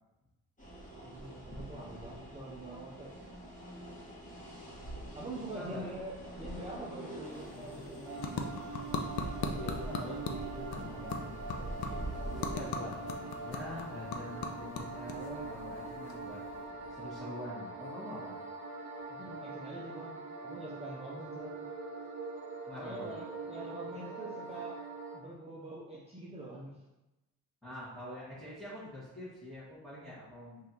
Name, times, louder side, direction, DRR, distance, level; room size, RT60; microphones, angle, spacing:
sound 1, 0.6-17.2, right 1 dB, 20° left, 1.5 m, -46 dB
voice 1, 1.0-3.1 5.1-8.5 19.1-21.7 22.8-24.8 25.1-26.8, right 1 dB, 15° right, -5 dB, 0.6 m, -45 dB
voice 2, 5.5-5.9 9.3-16.4 16.9-18.4 22.7-23.1 27.6-30.7, left 1 dB, ahead, -12 dB, 1.4 m, -45 dB
sound 2, 7.3-16.7, left 4 dB, 70° left, 0.6 m, -41 dB
sound 3, 8.0-25.2, right 3 dB, 90° right, 0.8 m, -43 dB
3.3 x 2.6 x 4.3 m, 0.98 s
cardioid pair, 100°, 39 cm